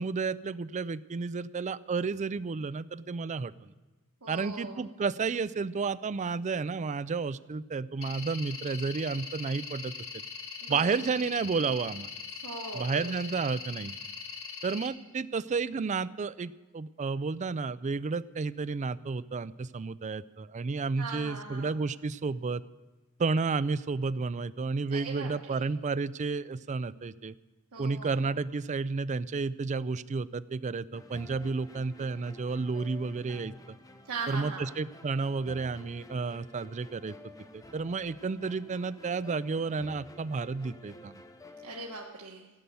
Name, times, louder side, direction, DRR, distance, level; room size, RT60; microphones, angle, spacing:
voice 1, 0.0-3.7 4.3-10.2 10.7-12.1 12.7-14.0 14.6-22.6 23.2-27.3 27.8-33.8 34.3-37.1 37.5-41.2, right 4 dB, 35° right, 16 dB, 0.4 m, -31 dB
voice 2, 4.2-4.8 10.6-10.9 12.4-13.3 21.0-21.8 24.9-25.6 27.7-28.4 34.0-34.7 41.6-42.5, right 4 dB, 85° right, -2 dB, 1.4 m, -40 dB
sound 1, 8.0-14.9, left 6 dB, 65° left, 1.7 m, -41 dB
sound 2, 30.9-42.0, left 2 dB, 15° left, 0.9 m, -51 dB
15.5 x 9.3 x 7.0 m, 1.1 s
head